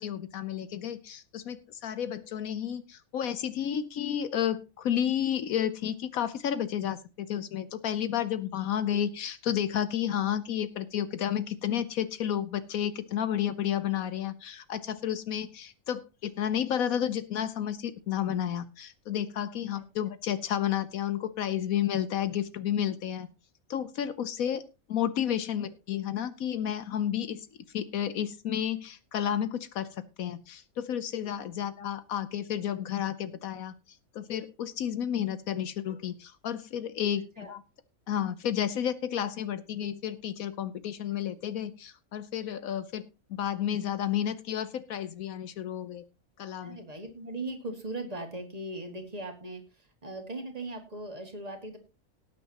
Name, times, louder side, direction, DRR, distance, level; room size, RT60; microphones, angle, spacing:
voice 1, 0.0-23.3 23.7-27.5 27.7-37.6 38.1-43.0 43.3-46.0 46.4-46.8, left 10 dB, 75° left, 14 dB, 1.2 m, -31 dB
voice 2, 46.6-49.6 50.0-51.8, right 2 dB, 25° right, 4 dB, 2.3 m, -39 dB
18.5 x 8.8 x 2.9 m, 0.28 s
omnidirectional pair, 1.5 m